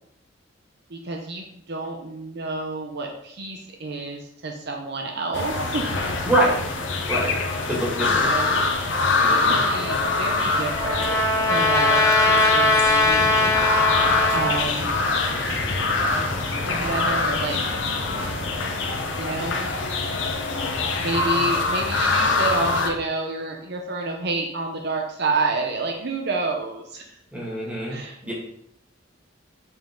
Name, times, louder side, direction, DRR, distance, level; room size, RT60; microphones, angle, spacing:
voice 1, 0.9-5.9 8.1-8.6 9.3-13.5 14.3-15.0 16.7-17.6 19.2-19.7 21.0-27.2 27.9-28.3, right 3 dB, 60° right, 2 dB, 0.8 m, -29 dB
sound 1, 5.3-22.9, left 3 dB, 75° left, 1.0 m, -24 dB
voice 2, 6.2-6.6 7.1-7.4 7.7-8.7 9.2-9.6 27.3-28.3, right 1 dB, 5° right, -5 dB, 2.4 m, -25 dB
Trumpet, 10.0-14.7, left 2 dB, 15° left, 1.0 m, -20 dB
sound 2, 13.0-18.5, equal, 30° right, 1.7 m, -37 dB
7.6 x 5.3 x 3.8 m, 0.74 s
head